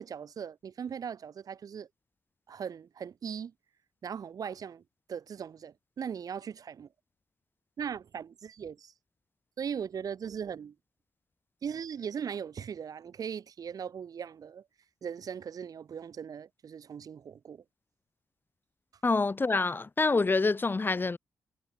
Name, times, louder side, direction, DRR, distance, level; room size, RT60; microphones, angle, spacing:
voice 1, 0.0-1.9 2.5-3.5 4.0-4.8 5.1-6.9 7.8-8.9 9.6-10.7 11.6-14.6 15.0-17.6, right 7 dB, 65° right, 4.1 m, -39 dB
voice 2, 19.0-21.2, left 3 dB, 30° left, 1.9 m, -26 dB
cardioid pair, 75°, 7 cm